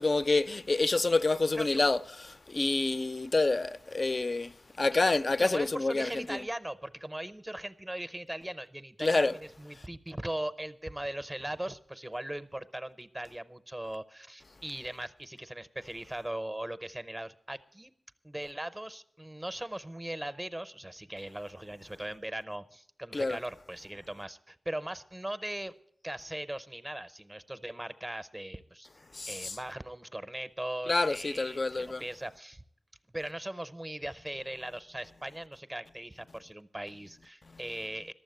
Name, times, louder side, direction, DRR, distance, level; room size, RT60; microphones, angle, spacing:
voice 1, 0.0-6.4 9.0-9.4 23.1-23.4 29.1-29.6 30.9-32.0, left 3 dB, 40° left, 0.4 m, -28 dB
voice 2, 5.4-17.9 18.2-25.7 26.0-28.9 29.3-32.6 33.1-38.1, right 1 dB, 15° right, 0.6 m, -39 dB
12.5 x 7.2 x 9.2 m
wide cardioid pair, 90°, 0 cm